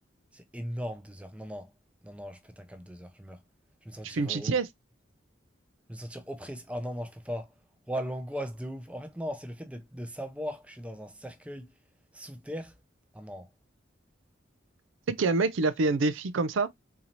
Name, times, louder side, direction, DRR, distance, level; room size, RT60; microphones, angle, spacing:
voice 1, 0.3-1.7 2.0-3.4 3.8-4.6 5.9-7.5 7.9-11.7 12.1-12.7 13.1-13.5, equal, 5° right, 0.5 m, -38 dB
voice 2, 4.0-4.7 15.1-16.7, right 3 dB, 90° right, 0.5 m, -26 dB
4.0 x 2.8 x 2.9 m
head